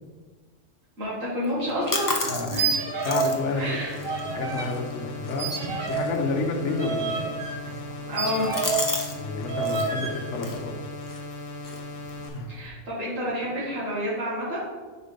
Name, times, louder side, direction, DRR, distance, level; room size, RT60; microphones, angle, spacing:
voice 1, 1.0-2.2 2.5-2.7 3.5-4.0 8.0-8.5 12.5-14.6, equal, 90° right, -9 dB, 2.0 m, -29 dB
sound 1, 1.4-9.2 9.4-9.9 10.3-12.7, left 2 dB, 20° left, 0.6 m, -35 dB
voice 2, 2.2-2.7 3.0-5.5 5.9-7.2 9.1-10.8 12.3-12.5, left 3 dB, 70° left, 3 dB, 1.1 m, -30 dB
sound 2, 2.5-3.4 3.6-4.7 5.4-9.0 9.5-10.2, right 4 dB, 50° right, 1.1 m, -29 dB
sound 3, 3.3-12.3, left 2 dB, 45° left, 1.0 m, -38 dB
5.4 x 4.5 x 5.1 m, 1.5 s
omnidirectional pair, 1.3 m